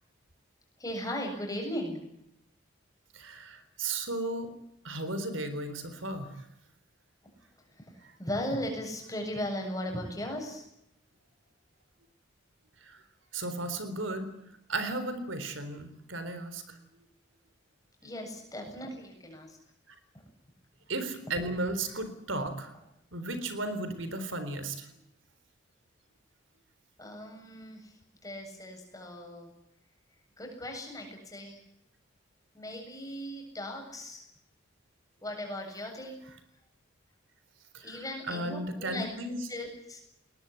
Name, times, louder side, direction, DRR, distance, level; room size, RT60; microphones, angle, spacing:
voice 1, 0.8-2.0 8.2-10.6 18.0-19.6 27.0-27.9 28.2-29.5 30.4-31.6 32.5-34.2 35.2-36.2 37.8-39.1 39.5-40.0, left 1 dB, 20° left, 2 dB, 7.5 m, -37 dB
voice 2, 3.1-4.5 4.8-6.3 12.8-13.0 13.3-14.3 14.7-16.8 20.9-22.7 23.1-24.9 37.7-39.4, right 2 dB, 80° right, 10 dB, 4.0 m, -35 dB
21.0 x 20.5 x 9.7 m, 0.81 s
head